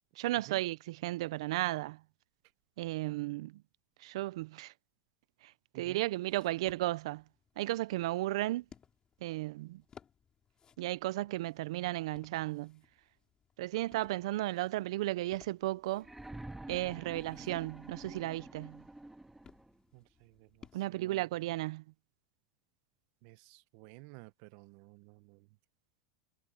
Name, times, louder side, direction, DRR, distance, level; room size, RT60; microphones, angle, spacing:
voice 1, 0.2-2.0 2.8-3.6 4.0-4.7 5.8-7.2 7.6-8.6 9.2-9.8 10.8-12.8 13.6-16.1 16.7-18.8 20.7-21.8, right 17 dB, 80° right, 0.5 m, -34 dB
sound 1, 6.3-20.8, left 7 dB, 25° left, 5.3 m, -62 dB
sound 2, 16.0-19.8 21.0-21.1, right 2 dB, 5° right, 1.9 m, -48 dB
voice 2, 19.9-21.3 23.2-25.5, right 23 dB, 60° right, 1.0 m, -53 dB
supercardioid pair, 125°, 3 cm